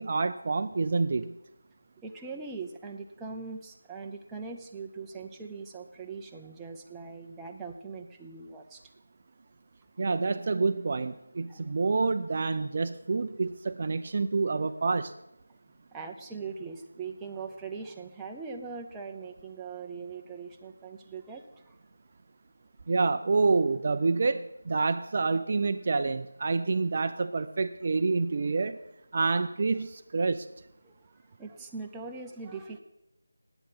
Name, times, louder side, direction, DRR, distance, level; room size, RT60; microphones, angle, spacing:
voice 1, 0.0-1.3 10.0-15.1 22.9-28.8 29.1-30.5, right 4 dB, 40° right, 10 dB, 0.5 m, -27 dB
voice 2, 2.0-8.8 11.5-11.7 15.9-21.7 30.8-30.9 31.4-32.8, right 4 dB, 5° right, 0 dB, 0.7 m, -41 dB
9.3 x 8.9 x 8.5 m, 0.89 s
figure-of-eight pair, 170°, 0 cm